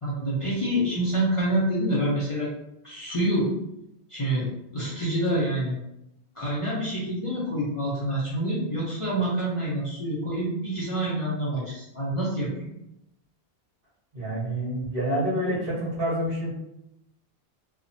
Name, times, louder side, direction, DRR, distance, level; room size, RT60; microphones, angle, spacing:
voice 1, 0.0-2.5 2.8-3.6 4.1-5.8 6.3-12.7, right 1 dB, 40° left, -8 dB, 0.5 m, -27 dB
voice 2, 14.1-16.5, equal, 60° right, -7 dB, 1.3 m, -27 dB
2.9 x 2.1 x 2.6 m, 0.86 s
omnidirectional pair, 1.1 m